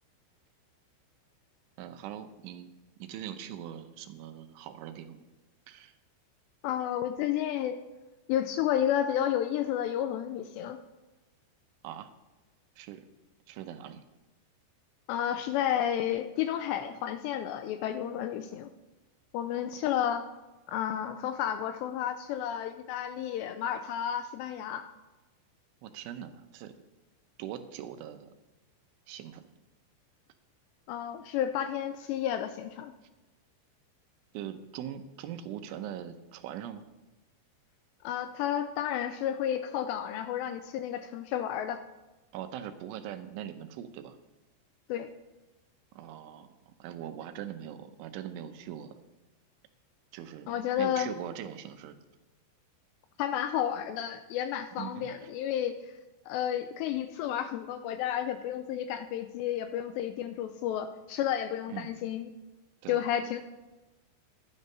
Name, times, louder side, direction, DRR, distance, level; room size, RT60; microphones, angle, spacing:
voice 1, 1.8-2.7 3.0-5.3 5.7-5.9 11.8-12.1 12.8-13.1 13.5-14.0 25.8-26.8 27.4-28.3 29.1-29.5 34.3-36.8 42.3-44.2 45.9-48.9 50.1-52.0 54.8-55.1 61.7-61.9 62.8-63.0, right 10 dB, 90° right, 8 dB, 3.3 m, -41 dB
voice 2, 6.6-7.8 8.3-10.8 15.1-18.7 19.3-20.3 20.7-24.8 30.9-32.9 38.0-41.8 44.9-45.1 50.5-51.1 53.2-55.8 56.3-62.3 62.9-63.4, left 10 dB, 85° left, 9 dB, 2.5 m, -31 dB
12.0 x 9.3 x 5.4 m, 1.1 s
omnidirectional pair, 5.4 m